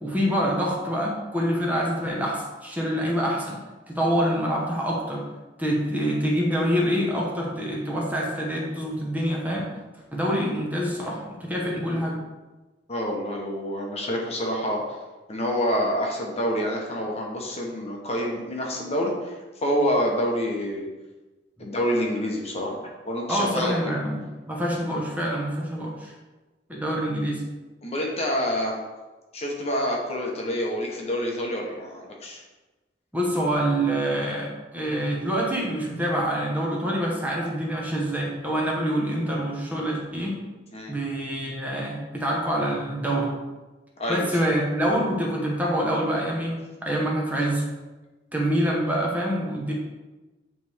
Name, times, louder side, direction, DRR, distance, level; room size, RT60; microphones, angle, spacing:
voice 1, 0.0-3.6 3.9-5.2 5.6-9.7 10.1-12.2 21.6-21.7 23.3-26.1 26.7-27.4 33.1-40.4 40.9-43.3 44.1-46.5 46.8-47.6 48.3-49.7, equal, 10° right, -3 dB, 1.1 m, -26 dB
voice 2, 12.9-15.0 15.3-20.9 21.6-23.7 27.8-28.8 29.3-32.4 40.7-40.9 44.0-44.3, equal, 35° left, -1 dB, 1.0 m, -27 dB
9.2 x 3.4 x 3.5 m, 1.2 s
head